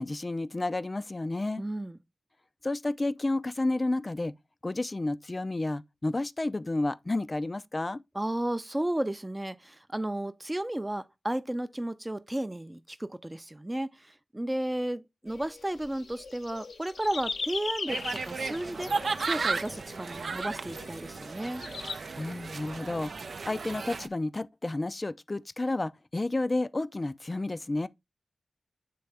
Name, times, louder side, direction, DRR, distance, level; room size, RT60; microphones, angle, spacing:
voice 1, 0.0-1.6 2.6-4.3 4.6-8.0 22.2-27.9, left 2 dB, 35° left, 0.4 m, -31 dB
voice 2, 1.6-2.0 8.1-21.6, right 1 dB, 20° right, 0.5 m, -33 dB
sound 1, 15.3-22.0, left 4 dB, 80° left, 0.7 m, -40 dB
sound 2, 17.9-24.1, right 4 dB, 70° right, 0.5 m, -34 dB
8.5 x 3.4 x 3.3 m
cardioid pair, 45°, 0 cm